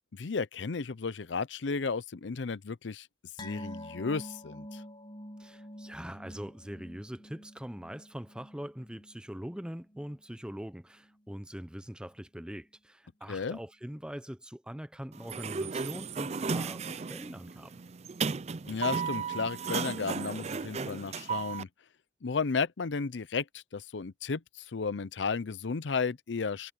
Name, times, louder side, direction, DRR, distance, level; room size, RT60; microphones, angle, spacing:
voice 1, 0.1-3.1 3.4-4.8 13.3-13.6 18.7-21.7 22.2-26.7, left 5 dB, 85° left, 0.6 m, -33 dB
sound 1, 3.4-10.2 10.5-10.7 11.1-11.2, equal, 25° left, 1.2 m, -47 dB
voice 2, 5.4-17.7, equal, 5° right, 0.7 m, -42 dB
Sliding door, 15.1-21.6, right 5 dB, 35° right, 0.5 m, -35 dB
head